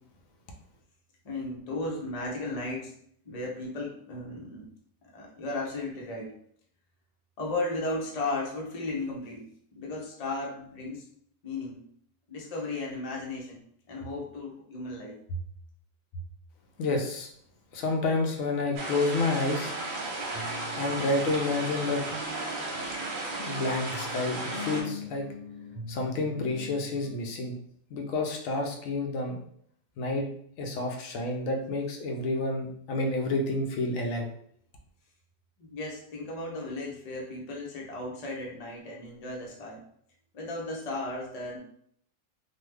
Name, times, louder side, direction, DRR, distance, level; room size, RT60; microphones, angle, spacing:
voice 1, 1.2-2.9 3.3-4.7 5.0-6.3 7.4-9.4 9.7-11.0 11.4-11.8 12.3-13.6 13.9-15.4 16.1-16.2 35.6-39.8 40.3-41.6, left 2 dB, 40° left, -1 dB, 0.6 m, -35 dB
voice 2, 16.8-17.3 17.7-19.7 20.7-22.0 23.4-25.3 25.9-27.6 27.9-29.4 30.0-30.3 30.6-34.3, left 2 dB, 85° left, 2 dB, 1.0 m, -29 dB
sound 1, 18.8-24.8, right 2 dB, 85° right, 1.2 m, -34 dB
sound 2, 20.3-27.1, left 2 dB, 30° right, 0.7 m, -43 dB
3.1 x 2.2 x 3.2 m, 0.65 s
omnidirectional pair, 1.4 m